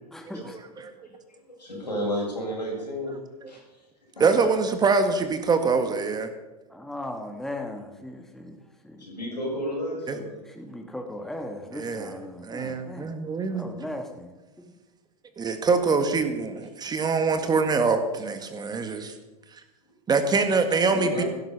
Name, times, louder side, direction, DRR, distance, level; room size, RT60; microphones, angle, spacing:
voice 1, 0.1-0.9 6.7-9.0 10.2-13.2 13.5-14.3 14.6-14.7, left 1 dB, ahead, 3 dB, 1.9 m, -38 dB
voice 2, 0.8-3.2 3.5-3.8 4.1-4.4 9.0-10.3 16.8-17.0 20.7-21.3, equal, 85° left, -2 dB, 7.1 m, -33 dB
voice 3, 4.2-6.3 10.1-10.2 11.8-12.1 12.4-13.7 15.4-19.1 20.1-21.2, right 4 dB, 20° right, 8 dB, 1.7 m, -24 dB
16.0 x 12.5 x 5.7 m, 1.1 s
figure-of-eight pair, 95°, 21 cm